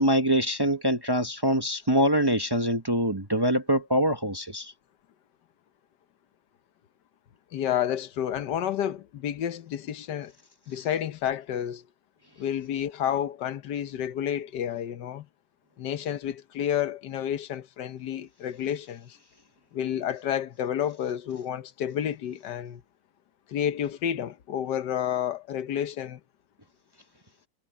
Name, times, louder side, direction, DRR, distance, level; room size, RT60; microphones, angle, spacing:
voice 1, 0.0-4.7, equal, 15° right, 0.9 m, -24 dB
voice 2, 7.5-10.3 10.7-11.8 12.4-15.3 15.8-19.2 19.7-22.8 23.5-26.2, left 10 dB, 80° left, 1.5 m, -30 dB
omnidirectional pair, 1.8 m